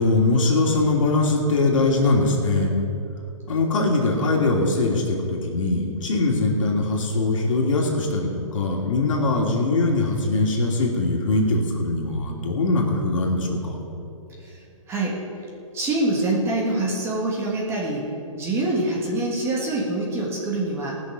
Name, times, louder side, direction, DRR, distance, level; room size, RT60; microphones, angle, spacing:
voice 1, 0.0-2.7 3.5-13.7, left 2 dB, 65° left, 0 dB, 2.7 m, -22 dB
voice 2, 14.4-15.2 15.7-20.9, right 2 dB, 15° right, -3 dB, 1.7 m, -25 dB
18.5 x 6.3 x 6.3 m, 2.8 s
hypercardioid pair, 155°, 18 cm